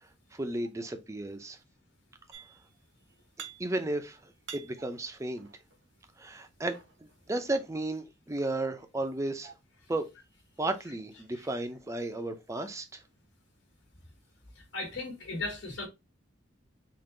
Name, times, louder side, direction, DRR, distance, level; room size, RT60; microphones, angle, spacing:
voice 1, 0.3-1.6 3.6-4.2 4.5-5.5 6.2-6.8 7.3-9.5 9.9-10.1 10.6-12.8, right 2 dB, 15° right, 0.5 m, -33 dB
sound 1, 2.3-2.8 3.1-4.0 4.3-5.8 6.5-7.6, right 8 dB, 70° right, 0.7 m, -48 dB
voice 2, 14.5-15.9, left 2 dB, 80° left, 1.3 m, -37 dB
3.7 x 2.5 x 3.7 m
head